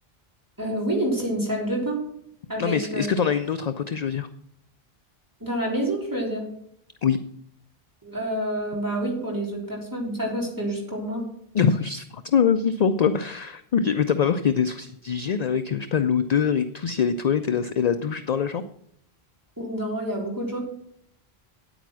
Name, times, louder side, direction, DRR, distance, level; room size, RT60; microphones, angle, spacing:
voice 1, 0.6-2.0 2.5-3.1 5.4-6.5 8.0-11.2 19.6-20.6, right 1 dB, 20° right, -3 dB, 3.4 m, -28 dB
voice 2, 2.6-4.3 7.0-7.2 11.5-18.6, left 7 dB, 50° left, 10 dB, 0.5 m, -23 dB
9.3 x 9.0 x 6.1 m, 0.73 s
omnidirectional pair, 1.0 m